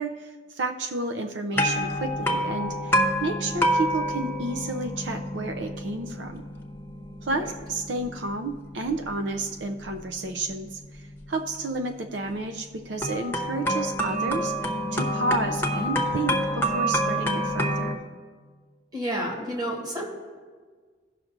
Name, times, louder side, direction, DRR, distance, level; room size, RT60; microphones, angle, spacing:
voice 1, 0.0-6.4 7.2-18.0, right 2 dB, 90° right, 6 dB, 0.6 m, -31 dB
sound 1, 1.5-11.6 13.0-17.9, equal, 15° left, 0.9 m, -28 dB
voice 2, 18.9-20.1, equal, 25° right, -1 dB, 1.7 m, -30 dB
17.0 x 5.8 x 2.6 m, 1.5 s
head